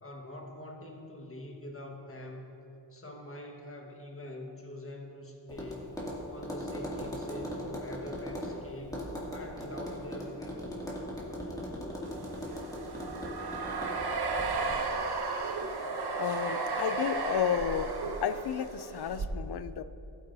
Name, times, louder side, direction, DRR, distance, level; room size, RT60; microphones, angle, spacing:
voice 1, 0.0-2.5 2.9-5.9 6.3-10.9, left 1 dB, 30° left, 1 dB, 1.5 m, -45 dB
Tap, 5.5-14.8, equal, 10° left, 2.3 m, -39 dB
sound 1, 12.1-19.3, right 3 dB, 60° right, 1.0 m, -34 dB
voice 2, 16.2-17.9 18.2-19.8, left 9 dB, 65° left, 13 dB, 0.5 m, -32 dB
15.5 x 8.4 x 2.7 m, 3.0 s
cardioid pair, 60°, 42 cm